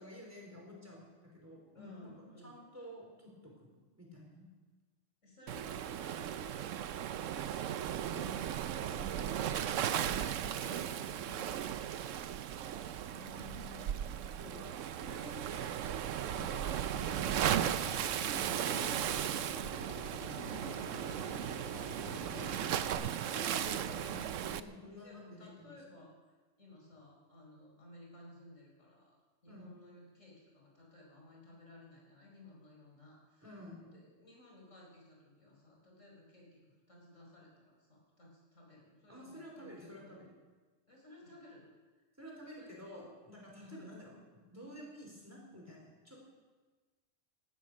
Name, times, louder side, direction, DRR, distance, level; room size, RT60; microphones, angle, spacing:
voice 1, 0.0-2.1 2.4-4.5 8.0-11.7 14.4-19.2 22.0-22.5 23.1-25.8 29.5-29.6 33.4-33.9 39.1-40.3 42.2-46.3, equal, 10° right, -2 dB, 4.5 m, -51 dB
voice 2, 1.7-2.5 5.2-7.4 13.1-14.0 16.3-16.6 20.1-23.4 24.9-26.1 26.6-29.2 29.4-33.5 33.8-40.1 40.9-41.7 42.5-42.7 43.6-43.9, left 2 dB, 75° left, -2 dB, 5.3 m, -57 dB
Waves surf, 5.5-24.6, right 10 dB, 80° right, 1.0 m, -36 dB
Drill, 16.9-22.9, left 1 dB, 45° left, 2.9 m, -47 dB
18.5 x 12.0 x 6.4 m, 1.3 s
omnidirectional pair, 1.3 m